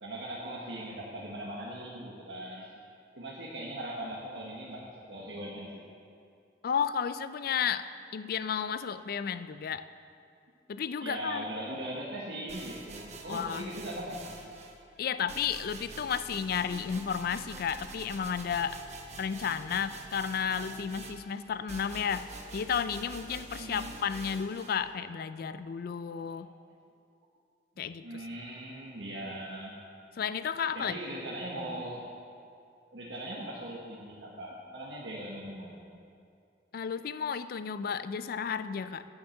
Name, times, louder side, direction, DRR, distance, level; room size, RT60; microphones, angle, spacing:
voice 1, 0.0-2.7 3.2-5.8 11.0-14.2 23.6-23.9 25.5-25.6 26.2-26.5 28.0-29.7 30.7-32.1 32.9-35.8, right 1 dB, 80° right, -4 dB, 1.2 m, -40 dB
voice 2, 6.6-9.9 10.7-11.4 13.3-13.7 15.0-18.8 19.2-26.5 27.8-28.2 30.2-30.9 36.7-39.1, left 7 dB, 55° left, 13 dB, 0.3 m, -33 dB
sound 1, 12.5-14.8 15.3-24.8, right 3 dB, 40° right, 0.9 m, -46 dB
9.5 x 7.2 x 6.4 m, 2.4 s
head